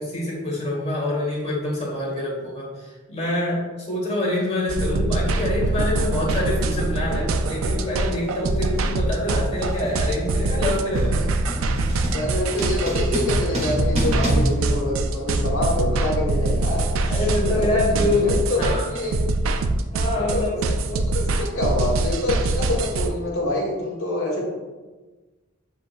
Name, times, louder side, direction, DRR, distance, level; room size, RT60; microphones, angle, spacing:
voice 1, 0.0-11.2 17.0-18.8 19.9-20.6, left 2 dB, 30° left, -4 dB, 1.3 m, -26 dB
sound 1, 4.7-23.1, right 2 dB, 90° right, 0.4 m, -24 dB
sound 2, 5.4-5.6 6.5-6.8 7.1-15.6, equal, 35° right, 0.9 m, -30 dB
voice 2, 12.1-19.2 20.0-24.4, left 1 dB, 90° left, -3 dB, 1.3 m, -26 dB
7.1 x 3.0 x 2.4 m, 1.3 s
head